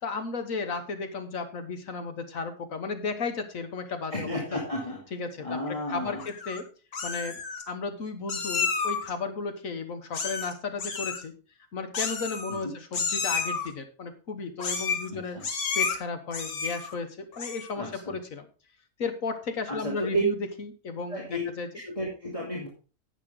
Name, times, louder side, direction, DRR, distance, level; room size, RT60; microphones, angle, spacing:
voice 1, 0.0-4.6 5.1-6.7 7.0-7.4 7.7-11.3 11.7-15.4 15.7-18.5 19.0-21.7 22.6-22.7, left 4 dB, 65° left, 7 dB, 1.6 m, -34 dB
voice 2, 4.1-5.0 5.4-6.2 12.5-12.8 15.1-15.4 17.7-18.1 19.7-20.3 21.1-21.4 21.8-22.7, equal, 20° left, -4 dB, 2.6 m, -32 dB
Meow, 6.2-6.6 6.9-7.6 8.3-9.1 10.1-10.5 10.8-11.2 11.9-12.6 12.9-13.7 14.6-15.1 15.4-16.0 16.3-16.9 17.3-17.8, left 5 dB, 85° left, 1.9 m, -31 dB
11.0 x 8.4 x 3.7 m, 0.36 s
omnidirectional pair, 1.5 m